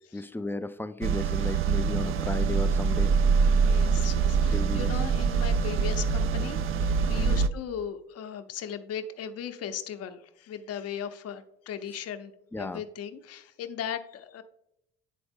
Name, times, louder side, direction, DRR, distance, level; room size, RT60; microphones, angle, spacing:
voice 1, 0.1-3.5 4.5-4.9 7.1-7.5 12.5-12.8, left 2 dB, 5° left, 11 dB, 0.4 m, -34 dB
sound 1, 1.0-7.5, right 5 dB, 45° right, 0.4 m, -24 dB
voice 2, 3.6-14.4, left 8 dB, 55° left, 9 dB, 0.8 m, -37 dB
10.0 x 3.9 x 3.5 m, 0.79 s
supercardioid pair, 65°, 29 cm